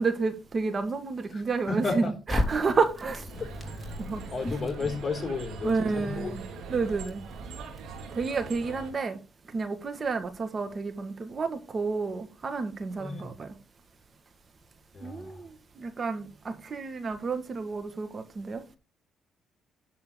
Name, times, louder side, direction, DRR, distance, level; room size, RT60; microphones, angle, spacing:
voice 1, 0.0-2.0 2.3-3.3 4.0-4.2 5.6-6.4 6.7-7.2 8.2-9.2 9.5-13.5 15.0-18.6, right 4 dB, 40° right, 1.9 m, -30 dB
voice 2, 1.3-2.1 3.3-3.8 4.3-6.4 8.7-8.8 13.0-13.3 14.9-15.4, left 3 dB, 30° left, 3.8 m, -33 dB
Crackle, 2.3-8.4, left 2 dB, 15° left, 4.0 m, -37 dB
sound 1, 3.3-8.9, right 5 dB, 80° right, 3.0 m, -42 dB
11.0 x 4.3 x 7.0 m
cardioid pair, 90°, 0 cm